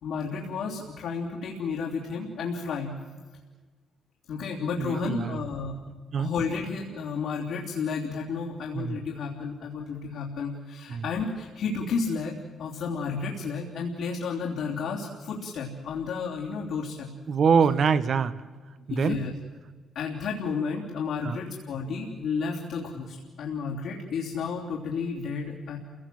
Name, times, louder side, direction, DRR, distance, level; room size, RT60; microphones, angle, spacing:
voice 1, 0.0-2.9 4.3-5.7 6.2-17.1 18.9-19.3 19.9-25.8, left 5 dB, 75° left, -4 dB, 3.2 m, -32 dB
voice 2, 4.8-5.4 6.1-6.3 8.7-9.0 10.9-11.0 17.3-18.3 18.9-19.2 21.2-21.4, right 6 dB, 55° right, 13 dB, 1.1 m, -24 dB
28.5 x 17.5 x 7.7 m, 1.4 s
cardioid pair, 90°, 0 cm